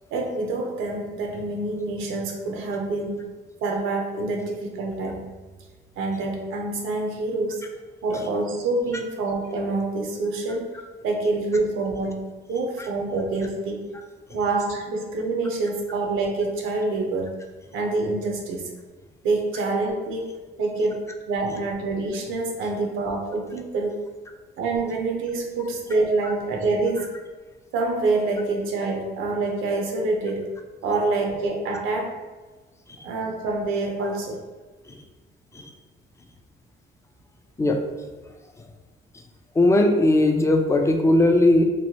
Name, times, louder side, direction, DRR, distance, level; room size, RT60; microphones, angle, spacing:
voice 1, 0.1-3.2 3.6-5.3 6.0-7.6 8.0-10.7 11.0-13.9 14.3-17.4 17.7-18.7 19.2-20.3 20.6-24.0 24.6-27.1 27.7-30.5 30.8-32.1 33.0-34.4, right 3 dB, 85° right, 0 dB, 0.6 m, -26 dB
voice 2, 39.6-41.6, left 1 dB, 15° left, 4 dB, 0.3 m, -18 dB
3.0 x 2.1 x 2.8 m, 1.3 s
cardioid pair, 90°, 20 cm